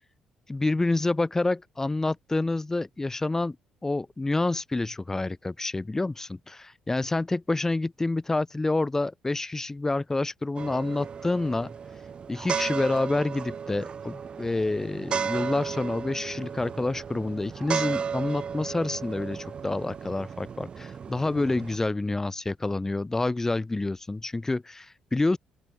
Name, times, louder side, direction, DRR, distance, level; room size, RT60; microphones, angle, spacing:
voice 1, 0.5-3.6 3.8-11.7 12.3-25.4, left 2 dB, 20° left, 2.8 m, -28 dB
sound 1, 10.6-21.8, right 6 dB, 40° right, 6.4 m, -34 dB
open air
figure-of-eight pair, 45°, 3 cm